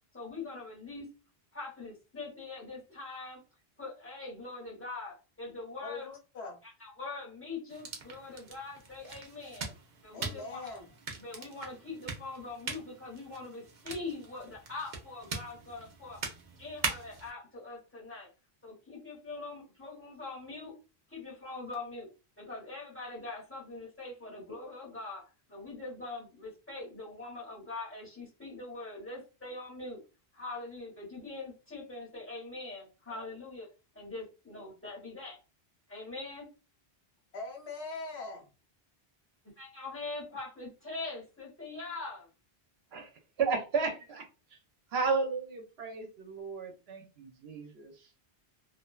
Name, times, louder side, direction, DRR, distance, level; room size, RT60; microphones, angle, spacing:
voice 1, 0.1-1.1 1.5-3.4 3.8-6.1 6.6-9.7 10.0-10.8 11.2-16.2 16.6-18.3 18.6-20.7 21.1-22.1 22.4-30.0 30.3-33.7 33.9-35.4 35.9-36.5 39.6-42.3, left 3 dB, 15° left, 1.0 m, -43 dB
voice 2, 5.8-6.6 10.1-10.9 37.3-38.5, left 3 dB, 85° left, 1.0 m, -41 dB
sound 1, 7.7-17.3, right 4 dB, 55° right, 0.6 m, -42 dB
voice 3, 43.4-44.2 44.5-44.6 44.9-48.1, right 4 dB, 80° right, 0.9 m, -33 dB
2.5 x 2.2 x 2.2 m
omnidirectional pair, 1.1 m